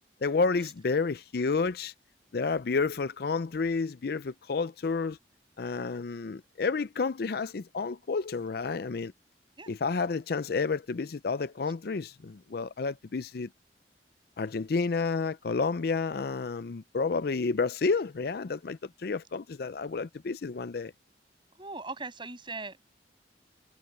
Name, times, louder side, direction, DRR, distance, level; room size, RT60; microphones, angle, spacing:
voice 1, 0.2-1.9 2.3-5.2 5.6-9.1 9.7-13.5 14.4-20.9, left 4 dB, 55° left, 0.5 m, -30 dB
voice 2, 21.6-22.9, right 3 dB, 25° right, 7.5 m, -39 dB
head